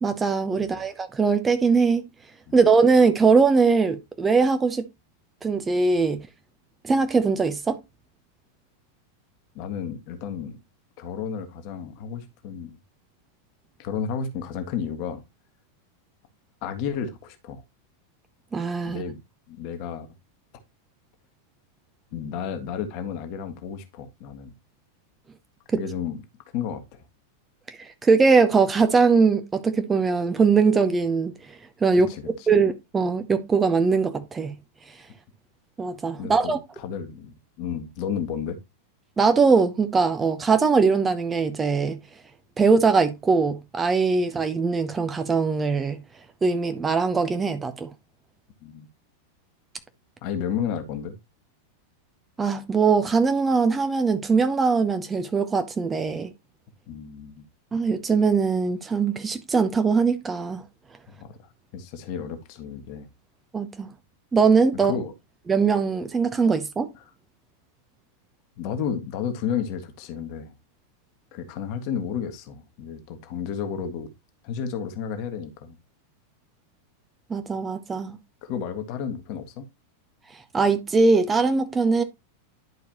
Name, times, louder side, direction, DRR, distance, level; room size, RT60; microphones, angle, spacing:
voice 1, 0.0-2.1 2.5-4.9 5.4-6.3 6.8-7.8 18.5-19.0 25.7-25.8 27.8-31.3 31.8-34.6 35.8-36.6 39.2-42.0 42.6-46.0 46.4-47.9 52.4-56.3 57.7-60.6 63.5-63.9 64.3-64.9 65.5-66.9 77.3-78.2 80.5-82.0, right 4 dB, 15° right, 0.8 m, -21 dB
voice 2, 9.5-10.6 11.0-12.8 13.8-15.2 16.6-17.6 18.8-19.2 19.5-20.1 22.1-24.5 25.7-26.2 26.5-27.0 31.9-32.5 36.2-38.6 48.6-48.9 50.2-51.2 56.9-57.4 61.1-61.3 61.7-63.1 64.8-65.1 66.9-67.1 68.6-70.5 71.3-74.1 74.4-75.7 78.4-79.7, left 7 dB, 45° left, 1.5 m, -32 dB
11.0 x 4.7 x 3.0 m
figure-of-eight pair, 90°, 0 cm